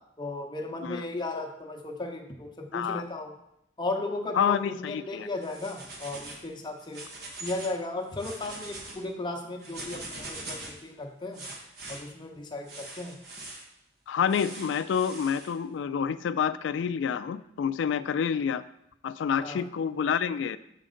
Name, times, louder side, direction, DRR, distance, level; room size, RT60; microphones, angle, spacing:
voice 1, 0.2-3.3 3.8-7.0 7.4-11.4 11.9-13.2 19.4-19.6, left 2 dB, 25° left, 2 dB, 0.8 m, -35 dB
voice 2, 2.7-3.0 4.3-5.3 14.1-18.6 19.0-20.6, left 7 dB, 75° left, 15 dB, 0.3 m, -28 dB
sound 1, 5.4-6.4 6.8-7.8 8.1-9.0 9.6-10.8 11.3-12.0 12.7-13.6 14.3-15.5, right 2 dB, 60° right, 1.3 m, -42 dB
6.4 x 5.1 x 3.8 m, 0.79 s
head